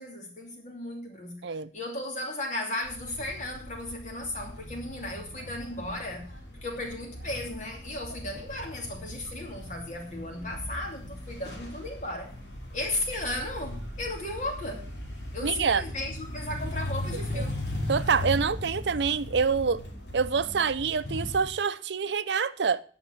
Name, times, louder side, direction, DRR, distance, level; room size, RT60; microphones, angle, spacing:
voice 1, 0.0-6.3 6.6-12.3 12.7-14.9 15.3-17.6, left 1 dB, 45° left, 2.7 m, -35 dB
sound 1, 2.8-21.5, left 1 dB, 80° left, 3.0 m, -38 dB
voice 2, 15.4-15.8 17.3-17.4 17.9-19.8 20.1-22.8, right 5 dB, 80° right, 0.6 m, -26 dB
10.5 x 5.5 x 8.0 m
head